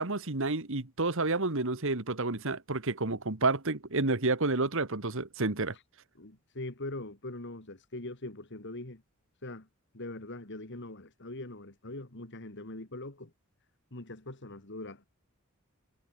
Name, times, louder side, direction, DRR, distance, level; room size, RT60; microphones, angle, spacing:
voice 1, 0.0-5.7, right 3 dB, 60° right, 2.0 m, -30 dB
voice 2, 6.1-9.0 9.4-9.7 9.9-13.3 13.9-15.0, left 2 dB, 55° left, 2.6 m, -42 dB
head